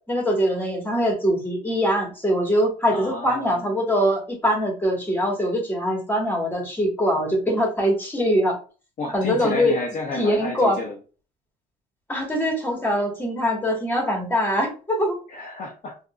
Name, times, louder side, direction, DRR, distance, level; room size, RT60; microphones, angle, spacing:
voice 1, 0.1-8.6 9.1-9.8 10.1-10.8 12.1-15.2, equal, 10° left, 0 dB, 1.4 m, -23 dB
voice 2, 2.9-3.7 9.0-11.0 15.3-16.0, left 3 dB, 45° left, 0 dB, 0.7 m, -31 dB
3.7 x 2.6 x 2.4 m, 0.36 s
cardioid pair, 110°, 17 cm